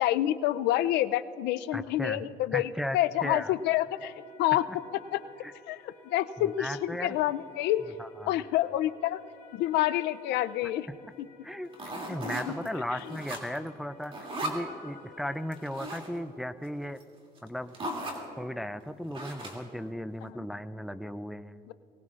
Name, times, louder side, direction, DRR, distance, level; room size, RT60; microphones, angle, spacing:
voice 1, 0.0-4.6 5.1-5.2 5.7-7.8 8.3-9.2 9.5-10.9 11.2-11.3 12.2-12.5 12.9-13.2 20.2-20.5 21.7-21.8, left 14 dB, 85° left, 13 dB, 0.5 m, -28 dB
voice 2, 1.7-2.2 2.5-3.5 5.4-5.5 6.4-7.2 8.0-8.3 11.4-11.7 12.1-14.1 14.4-17.0 17.4-17.7 18.4-21.6, equal, ahead, 10 dB, 0.4 m, -36 dB
sound 1, 3.1-15.8, left 6 dB, 55° left, 2.5 m, -55 dB
sound 2, 11.7-12.7 13.0-13.7 14.0-14.6 15.5-16.1 17.0-17.1 17.4-17.5 17.7-18.2 19.1-19.7, right 1 dB, 30° right, 2.6 m, -37 dB
23.5 x 18.5 x 2.5 m, 2.8 s
cardioid pair, 110°, 17 cm